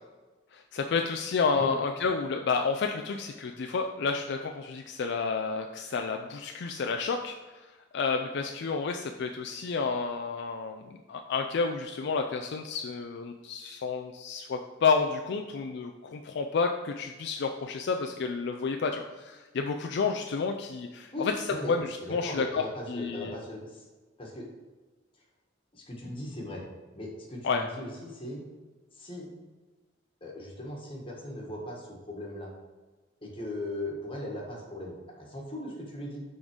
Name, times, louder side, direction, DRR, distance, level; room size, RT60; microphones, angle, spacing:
voice 1, 0.5-7.3 7.9-21.3 21.7-23.3 27.4-27.6, left 5 dB, 60° left, 4 dB, 0.4 m, -30 dB
voice 2, 21.1-21.7 22.0-23.8 24.2-24.5 25.7-26.6 26.9-28.4 29.0-29.3 30.2-32.5 33.2-36.2, left 1 dB, 30° left, -2 dB, 1.5 m, -38 dB
6.1 x 3.8 x 5.0 m, 1.3 s
head